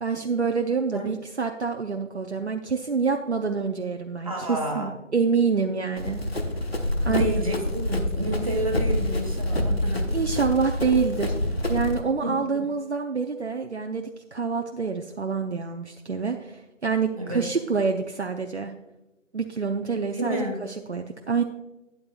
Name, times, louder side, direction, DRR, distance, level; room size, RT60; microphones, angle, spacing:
voice 1, 0.0-6.2 7.1-7.3 10.1-11.4 11.7-18.7 19.3-21.4, right 5 dB, 60° right, 4 dB, 0.7 m, -27 dB
voice 2, 4.2-4.9 7.0-10.1 12.2-12.6 17.1-17.4 20.1-20.6, equal, 25° right, 0 dB, 1.4 m, -30 dB
Run, 6.0-12.0, left 1 dB, 50° left, 1.3 m, -27 dB
12.5 x 8.7 x 2.3 m, 1.0 s
figure-of-eight pair, 175°, 39 cm